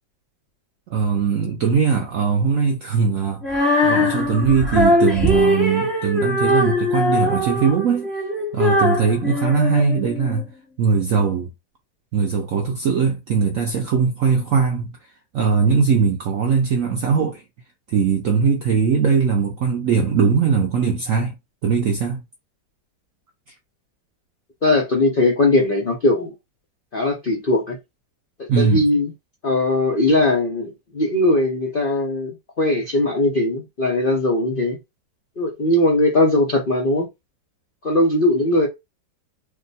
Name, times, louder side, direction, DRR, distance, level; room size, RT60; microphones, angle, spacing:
voice 1, 0.9-3.4 3.8-8.1 8.5-10.5 10.8-11.5 12.1-14.9 15.3-17.4 17.9-21.4 21.6-22.2 28.5-28.8, right 5 dB, 70° right, 0.7 m, -20 dB
Female singing, 3.4-10.5, left 1 dB, ahead, 0.7 m, -21 dB
voice 2, 24.6-26.3 26.9-27.8 28.6-29.1 29.4-34.8 35.4-37.1 37.8-38.7, left 2 dB, 55° left, 0.6 m, -19 dB
2.9 x 2.3 x 4.0 m
omnidirectional pair, 2.0 m